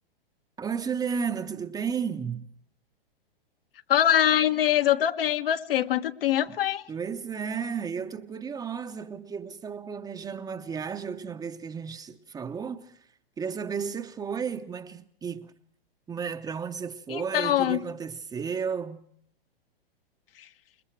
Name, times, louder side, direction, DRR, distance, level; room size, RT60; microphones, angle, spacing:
voice 1, 0.6-2.5 6.9-12.9 13.4-15.5 16.1-19.0, right 6 dB, 15° right, 0.8 m, -33 dB
voice 2, 3.9-6.8 17.1-17.8 20.4-20.5, left 11 dB, 70° left, 1.4 m, -23 dB
27.0 x 21.5 x 4.6 m
hypercardioid pair, 120°, 30 cm